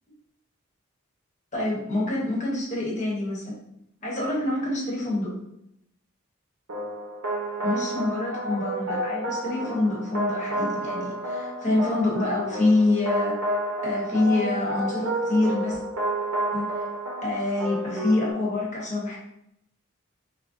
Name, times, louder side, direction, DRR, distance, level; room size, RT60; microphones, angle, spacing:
voice 1, 1.5-3.5 4.0-5.4 7.6-13.5 13.8-15.8 16.5-16.9 17.2-19.2, left 2 dB, 35° left, -4 dB, 1.1 m, -26 dB
sound 1, 6.7-18.3, right 1 dB, 85° right, 0.9 m, -30 dB
6.0 x 2.2 x 2.5 m, 0.77 s
head